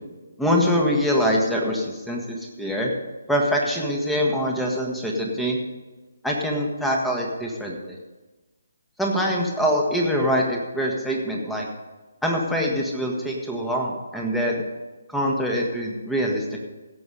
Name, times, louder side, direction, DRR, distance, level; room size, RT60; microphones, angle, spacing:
voice 1, 0.4-2.9 3.3-5.6 6.2-8.0 9.0-11.7 12.2-14.6 15.1-16.7, equal, 5° left, -1 dB, 1.7 m, -24 dB
16.5 x 6.9 x 5.3 m, 1.2 s
figure-of-eight pair, 145°, 0 cm